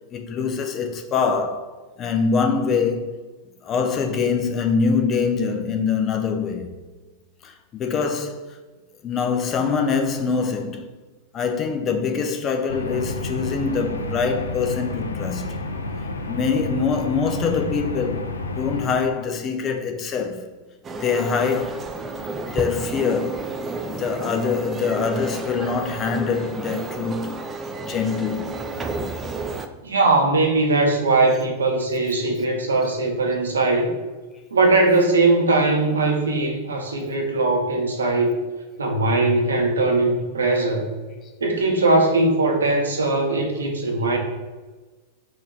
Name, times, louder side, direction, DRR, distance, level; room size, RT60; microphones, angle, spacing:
voice 1, 0.1-3.1 3.6-6.7 7.4-8.4 9.0-10.9 11.3-15.6 16.3-20.5 21.0-21.8 22.5-23.5 23.8-27.4 27.9-28.5 34.8-35.0, left 5 dB, 30° left, 0.6 m, -24 dB
sound 1, 12.7-18.9, left 2 dB, 75° left, 0.4 m, -30 dB
sound 2, 20.8-29.7, right 3 dB, 20° right, 0.4 m, -32 dB
voice 2, 29.8-33.9 34.5-38.3 38.8-40.9 41.4-44.2, right 2 dB, 70° right, 0.8 m, -20 dB
3.8 x 2.7 x 4.5 m
figure-of-eight pair, 90°, 0 cm